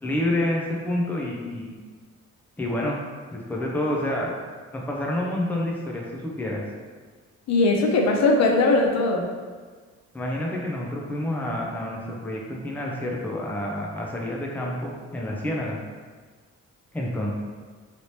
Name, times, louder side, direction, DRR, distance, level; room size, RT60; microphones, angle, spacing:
voice 1, 0.0-1.7 2.6-3.0 3.3-4.3 4.7-6.6 10.1-15.8 16.9-17.3, left 1 dB, 5° left, -2 dB, 0.5 m, -28 dB
voice 2, 7.5-9.3, left 2 dB, 60° left, 0 dB, 0.6 m, -20 dB
3.2 x 2.9 x 2.8 m, 1.5 s
cardioid pair, 90°, 30 cm